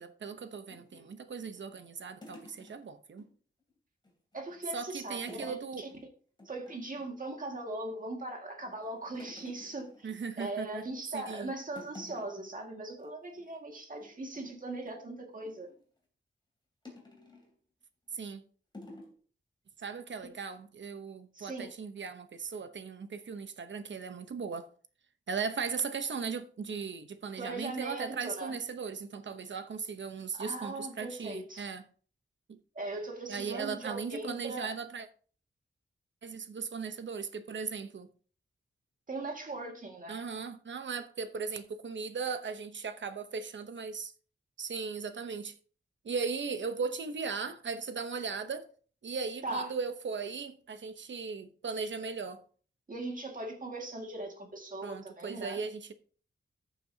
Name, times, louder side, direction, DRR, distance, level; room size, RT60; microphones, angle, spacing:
voice 1, 0.0-3.3 4.7-5.8 10.0-10.9 11.1-11.5 18.1-18.4 19.8-24.7 25.3-31.8 32.5-32.6 33.3-35.1 36.2-38.1 40.1-44.1 44.6-45.5 46.0-48.7 49.0-52.4 54.8-55.9, right 5 dB, 70° right, 0.9 m, -38 dB
sound 1, 0.7-3.3 3.6-3.7 4.0-4.7 5.3-5.6 5.9-6.1 6.4-7.2 7.7-8.3 8.6-10.7 11.1-11.4 11.7-12.5 12.9-13.0 13.3-13.6 14.0-15.8 16.8-17.5 18.1-18.3 18.7-19.1, left 1 dB, 20° left, 2.9 m, -52 dB
voice 2, 4.3-5.9 6.5-10.1 10.4-15.7 20.2-20.3 21.3-21.7 27.4-28.5 30.3-31.7 32.7-34.7 39.1-40.2 49.4-49.7 52.9-55.6, right 2 dB, 40° right, 2.1 m, -39 dB
14.0 x 7.3 x 2.8 m
wide cardioid pair, 150°, 20 cm